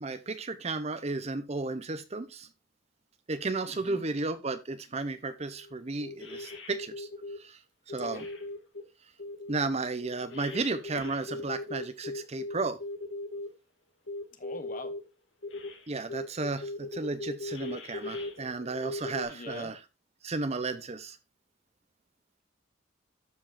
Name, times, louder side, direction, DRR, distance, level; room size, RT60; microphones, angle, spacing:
voice 1, 0.0-2.5 3.3-7.1 7.4-7.6 7.9-8.2 9.5-12.8 15.9-19.8 20.2-21.2, right 3 dB, 35° right, 0.7 m, -33 dB
voice 2, 3.7-4.1 8.0-8.3 14.3-15.0 19.1-19.7, left 3 dB, 40° left, 1.0 m, -43 dB
sound 1, 5.6-5.7 6.0-7.4 7.9-8.8 9.2-13.5 14.1-15.0 15.4-15.8 16.1-19.3, left 2 dB, 70° left, 1.8 m, -39 dB
13.0 x 5.1 x 2.6 m
head